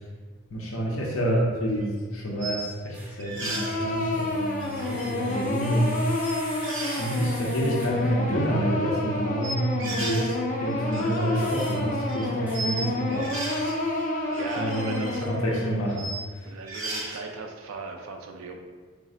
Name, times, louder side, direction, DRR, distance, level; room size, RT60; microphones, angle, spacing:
voice 1, 0.5-6.0 7.0-10.3 10.6-13.7 14.2-16.0 16.3-16.5, equal, 75° left, -3 dB, 0.6 m, -28 dB
sound 1, 1.7-1.8 2.4-2.7 3.2-3.9 4.6-5.9 6.1-6.3 6.6-7.2 7.9-8.4 9.4-10.4 10.7-12.8 13.1-13.8 14.2-16.2 16.6-17.2, right 2 dB, 60° right, 0.8 m, -36 dB
sound 2, 2.9-3.2 4.0-8.2 11.3-11.8 12.5-12.6, right 1 dB, 5° right, 0.6 m, -43 dB
sound 3, 3.4-16.2, left 2 dB, 35° left, 0.3 m, -30 dB
voice 2, 14.3-15.3 16.5-18.6, right 3 dB, 80° right, 2 dB, 0.4 m, -37 dB
4.1 x 2.0 x 3.6 m, 1.5 s
head